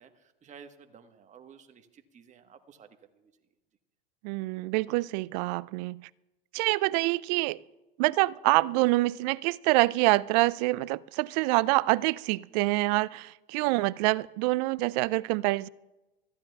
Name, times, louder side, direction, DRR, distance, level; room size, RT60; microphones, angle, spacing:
voice 1, 0.0-3.3, right 6 dB, 25° right, 1.3 m, -53 dB
voice 2, 4.2-6.0 6.5-7.6 8.0-15.7, right 21 dB, 50° right, 0.4 m, -26 dB
25.0 x 14.5 x 2.3 m
hypercardioid pair, 100°, 29 cm